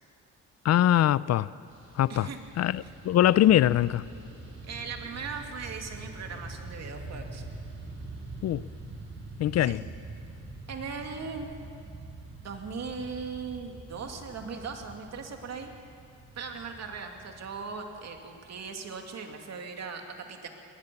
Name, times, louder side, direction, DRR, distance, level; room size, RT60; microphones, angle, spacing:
voice 1, 0.6-1.5 1.9-2.3 2.6-4.0 8.4-8.7 9.4-9.8, left 12 dB, 60° left, 0.5 m, -22 dB
Fixed-wing aircraft airplane, 1.7-19.1, right 2 dB, 40° right, 5.5 m, -45 dB
voice 2, 4.6-7.4 9.6-9.8 10.7-11.5 12.4-15.7 16.3-20.5, right 5 dB, 60° right, 2.6 m, -39 dB
21.0 x 18.5 x 7.0 m
cardioid pair, 90°, 30 cm